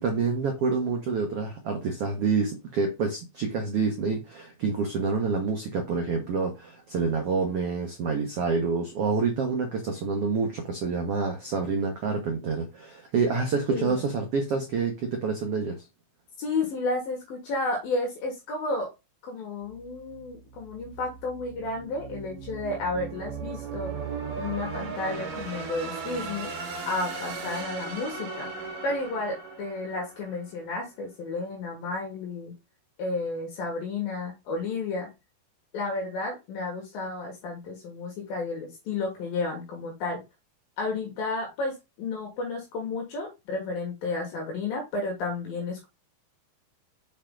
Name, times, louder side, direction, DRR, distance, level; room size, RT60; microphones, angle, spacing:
voice 1, 0.0-15.9, right 4 dB, 80° right, 1.3 m, -27 dB
voice 2, 13.7-14.1 16.4-18.9 19.2-23.9 24.4-26.5 26.9-28.5 28.8-32.5 33.0-35.1 35.7-40.2 40.8-45.8, left 3 dB, 70° left, 3.2 m, -32 dB
sound 1, 19.7-30.7, right 5 dB, 60° right, 3.3 m, -37 dB
6.7 x 4.6 x 3.8 m
omnidirectional pair, 4.4 m